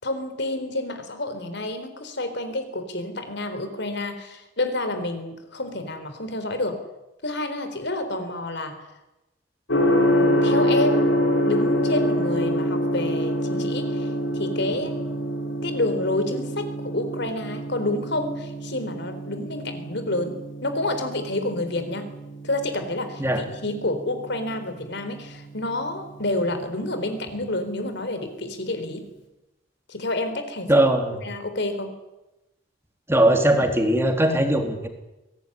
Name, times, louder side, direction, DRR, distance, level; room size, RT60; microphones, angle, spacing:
voice 1, 0.0-6.8 7.2-8.8 10.1-11.1 11.4-14.9 15.6-22.1 22.4-29.0 29.9-30.9 31.2-31.9, left 2 dB, 65° left, 9 dB, 4.0 m, -29 dB
Gong, 9.7-27.6, equal, 80° left, 6.9 m, -27 dB
voice 2, 30.7-31.1 33.1-34.9, right 1 dB, 15° right, 5 dB, 3.3 m, -19 dB
23.0 x 18.0 x 10.0 m, 0.99 s
head